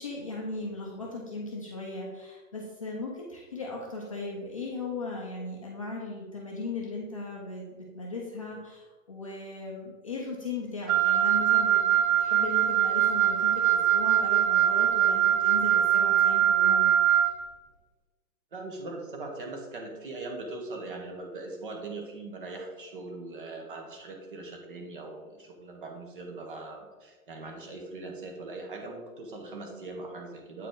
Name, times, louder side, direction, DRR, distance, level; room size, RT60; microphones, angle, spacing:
voice 1, 0.0-16.9, left 2 dB, 25° left, -3 dB, 0.6 m, -37 dB
Wind instrument woodwind instrument, 10.9-17.3, right 10 dB, 75° right, 0.7 m, -23 dB
voice 2, 18.5-30.7, right 2 dB, 35° right, 3 dB, 1.1 m, -40 dB
8.2 x 4.6 x 3.8 m, 1.3 s
hypercardioid pair, 175°, 43 cm